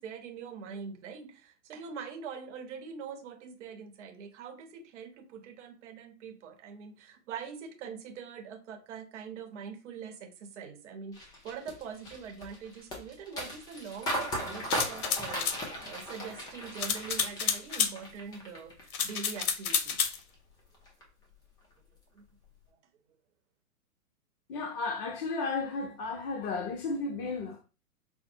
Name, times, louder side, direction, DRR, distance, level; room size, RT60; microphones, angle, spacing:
voice 1, 0.0-20.0 22.1-22.2 22.7-22.8, right 6 dB, 50° right, 0.9 m, -43 dB
sound 1, 11.1-19.4 19.7-20.3 20.7-21.0, equal, 10° left, 0.5 m, -37 dB
sound 2, 14.7-15.6 16.8-17.9 18.9-20.2, left 6 dB, 70° left, 0.8 m, -30 dB
voice 2, 24.5-27.6, left 3 dB, 40° left, 0.8 m, -33 dB
5.4 x 2.1 x 2.7 m
hypercardioid pair, 120°, 45 cm